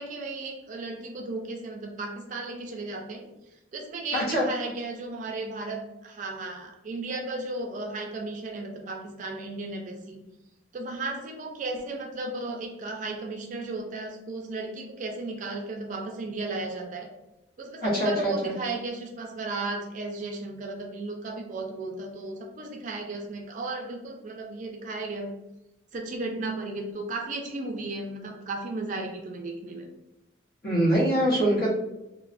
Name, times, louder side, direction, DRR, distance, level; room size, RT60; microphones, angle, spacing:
voice 1, 0.0-3.3 3.7-10.2 10.7-17.1 17.6-25.3 25.9-29.9, right 2 dB, 40° right, 2 dB, 0.3 m, -35 dB
voice 2, 4.1-4.5 17.8-18.5 30.6-31.7, right 1 dB, 50° left, -6 dB, 1.0 m, -23 dB
3.0 x 2.0 x 2.5 m, 0.92 s
head